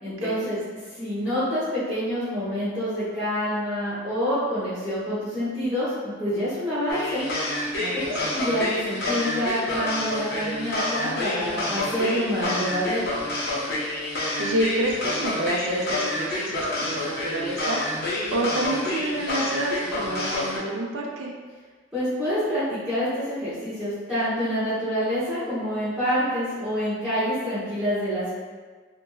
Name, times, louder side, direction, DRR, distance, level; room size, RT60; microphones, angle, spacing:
voice 1, 0.0-0.6 0.9-7.2 8.0-13.1 21.9-28.3, equal, 5° right, -15 dB, 0.8 m, -27 dB
sound 1, 6.9-20.6, left 1 dB, 55° left, 0.6 m, -28 dB
voice 2, 7.8-8.3 14.0-21.3, right 1 dB, 80° right, 0 dB, 0.5 m, -29 dB
2.8 x 2.5 x 2.3 m, 1.4 s
head